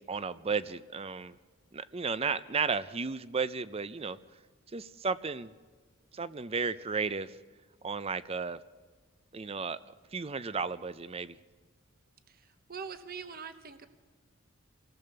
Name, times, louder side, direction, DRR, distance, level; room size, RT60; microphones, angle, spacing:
voice 1, 0.0-1.4 1.7-4.2 4.7-5.5 6.1-7.4 7.8-8.6 9.3-9.8 10.1-11.4, right 5 dB, 30° right, 16 dB, 0.6 m, -33 dB
voice 2, 12.3-13.9, right 6 dB, 45° right, 9 dB, 1.0 m, -43 dB
28.0 x 18.0 x 6.8 m, 1.5 s
head